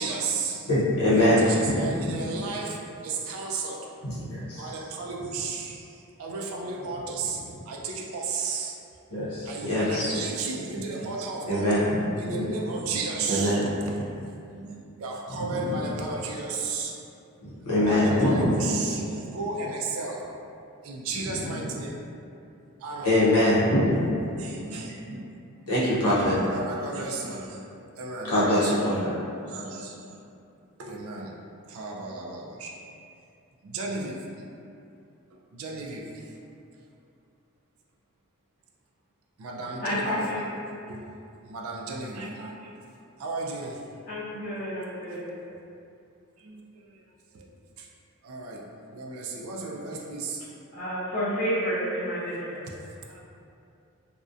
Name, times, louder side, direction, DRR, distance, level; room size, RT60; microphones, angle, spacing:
voice 1, 0.0-0.7 1.1-3.9 4.6-5.9 6.2-8.8 9.4-11.8 12.2-13.7 14.5-17.0 17.7-20.2 20.8-22.0 22.8-23.1 24.4-25.3 26.5-27.6 28.0-28.9 29.5-30.2 30.8-31.3 31.7-32.8 33.6-34.2 35.5-36.2 39.4-40.2 40.9-41.0 41.5-42.7 43.2-43.8 46.4-46.9 47.3-47.5 47.8-47.9 48.2-50.4 53.1-53.2, right 3 dB, 70° right, -1 dB, 0.3 m, -34 dB
voice 2, 0.7-2.1 4.0-4.7 9.1-10.1 11.5-12.0 12.3-12.4 12.9-13.0 13.3-13.7 15.4-15.8 17.6-18.6 21.3-21.6 23.0-24.3 25.7-26.4 28.3-29.2, left 1 dB, 90° left, -9 dB, 0.6 m, -23 dB
voice 3, 39.8-40.4 44.1-45.3 50.7-52.6, equal, 45° left, -13 dB, 0.5 m, -30 dB
2.5 x 2.1 x 2.3 m, 2.6 s
head